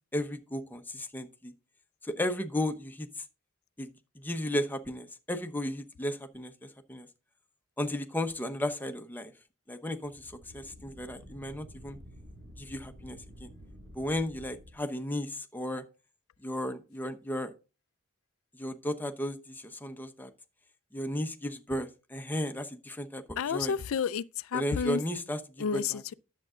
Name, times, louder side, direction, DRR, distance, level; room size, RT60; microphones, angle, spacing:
voice 1, 0.1-1.5 2.0-3.2 3.8-3.9 4.1-7.1 7.8-9.3 9.7-12.0 12.6-13.5 13.9-15.8 16.4-17.5 18.5-20.3 20.9-23.2 23.5-23.7 24.5-25.8, left 1 dB, 10° left, 0.9 m, -34 dB
sound 1, 9.9-14.8, equal, 60° right, 5.3 m, -51 dB
voice 2, 23.4-25.0 25.6-26.1, left 7 dB, 85° left, 0.4 m, -31 dB
10.5 x 7.4 x 3.8 m
head